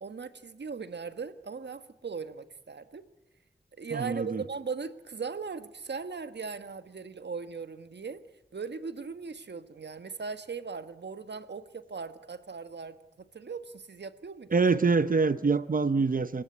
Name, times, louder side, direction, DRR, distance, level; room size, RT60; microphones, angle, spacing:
voice 1, 0.0-3.0 3.8-8.2 8.5-13.0 13.3-14.6, right 5 dB, 80° right, 11 dB, 1.5 m, -38 dB
voice 2, 3.9-4.4 14.5-16.4, right 4 dB, 55° right, 13 dB, 0.8 m, -25 dB
29.0 x 17.5 x 8.5 m, 1.0 s
wide cardioid pair, 85°, 18 cm